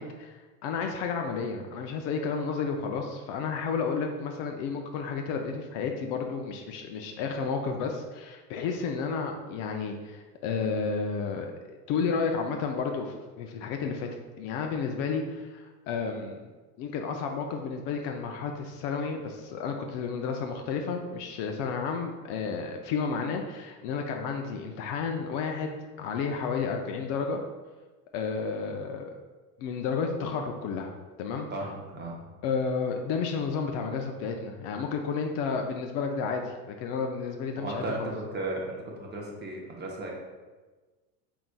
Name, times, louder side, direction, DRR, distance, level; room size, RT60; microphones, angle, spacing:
voice 1, 0.0-14.1 14.4-16.4 16.8-27.4 28.1-29.1 29.6-30.9 31.2-31.5 32.4-38.1, left 5 dB, 45° left, 3 dB, 0.5 m, -32 dB
voice 2, 31.5-32.2 37.6-40.1, right 2 dB, 20° right, -1 dB, 0.7 m, -35 dB
4.6 x 3.9 x 2.2 m, 1.3 s
supercardioid pair, 120°, 47 cm